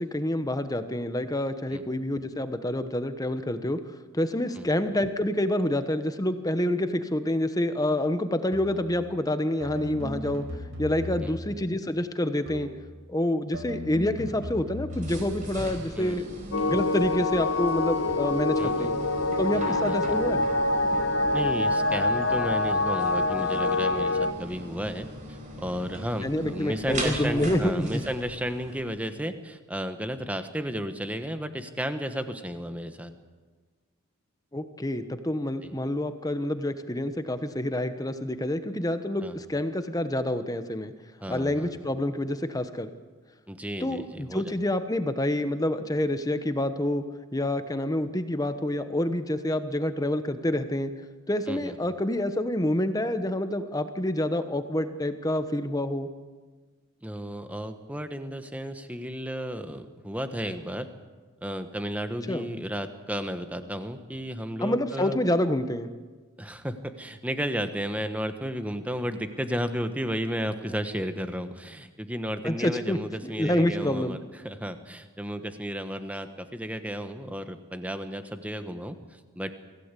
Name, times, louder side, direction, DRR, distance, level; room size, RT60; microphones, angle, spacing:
voice 1, 0.0-3.8 4.1-10.4 10.8-12.7 13.1-16.2 16.7-19.0 19.4-20.5 26.2-28.0 34.5-40.9 41.3-42.9 43.8-47.0 47.3-50.9 51.3-56.1 62.3-62.5 64.6-65.9 72.4-74.2, left 1 dB, 15° left, 10 dB, 1.1 m, -27 dB
sound 1, 8.5-8.9 9.6-11.5 12.5-12.9 13.5-15.3, left 1 dB, 65° right, 4.9 m, -37 dB
sound 2, 14.9-28.8, equal, 35° right, 4.6 m, -39 dB
voice 2, 16.0-16.3 18.6-18.9 19.5-20.2 21.3-33.1 35.6-35.7 39.2-39.4 41.2-41.7 43.5-44.5 51.5-51.8 57.0-60.9 61.4-65.2 66.4-74.2 74.4-79.6, equal, 5° right, 8 dB, 1.2 m, -33 dB
sound 3, 16.5-24.3, left 2 dB, 65° left, 1.0 m, -26 dB
24.5 x 16.0 x 8.4 m, 1.4 s
head